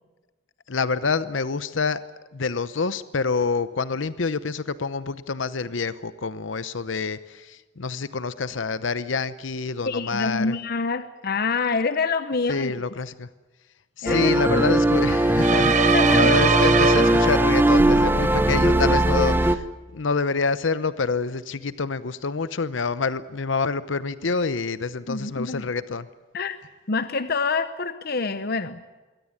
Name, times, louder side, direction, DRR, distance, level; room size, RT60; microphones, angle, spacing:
voice 1, 0.7-2.0 2.3-10.5 12.5-13.3 14.0-19.6 19.9-26.1, left 4 dB, 90° left, 15 dB, 0.8 m, -27 dB
voice 2, 9.8-12.7 14.0-14.6 15.9-16.4 25.1-25.6 26.3-26.6 26.9-29.0, left 4 dB, 55° left, 11 dB, 0.9 m, -26 dB
sound 1, 14.1-19.6, right 1 dB, 10° right, 0.9 m, -19 dB
sound 2, 15.4-17.7, right 5 dB, 40° right, 1.0 m, -22 dB
22.5 x 17.0 x 9.7 m, 1.2 s
head